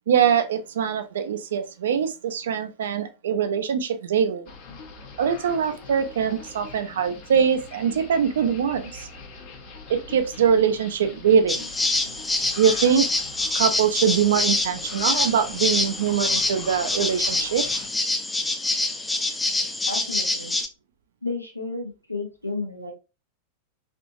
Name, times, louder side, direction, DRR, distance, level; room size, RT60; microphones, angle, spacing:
voice 1, 0.1-4.5 5.2-9.1 9.9-11.7 12.6-13.1 13.5-17.7, right 7 dB, 60° right, 0.4 m, -23 dB
sound 1, 4.5-17.9, left 4 dB, 45° left, 0.8 m, -43 dB
sound 2, 11.5-20.7, left 2 dB, 10° left, 0.4 m, -26 dB
voice 2, 19.9-20.6 21.2-22.9, left 3 dB, 85° left, 0.6 m, -32 dB
3.4 x 2.5 x 2.5 m
figure-of-eight pair, 90°, 0 cm